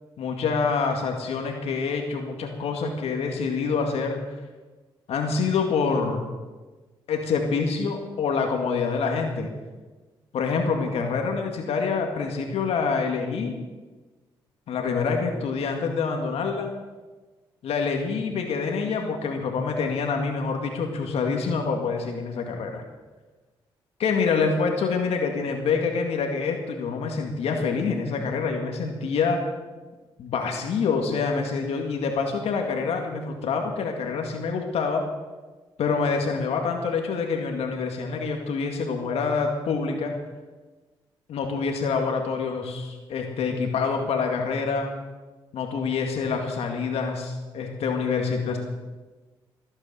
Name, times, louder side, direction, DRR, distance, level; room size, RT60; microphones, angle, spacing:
voice 1, 0.2-4.2 5.1-6.3 7.1-9.5 10.3-13.6 14.7-16.7 17.6-22.8 24.0-29.4 30.2-35.0 35.8-40.1 41.3-44.9 45.5-48.6, left 5 dB, 75° left, 3 dB, 2.1 m, -26 dB
20.0 x 8.9 x 7.0 m, 1.2 s
supercardioid pair, 55°, 11 cm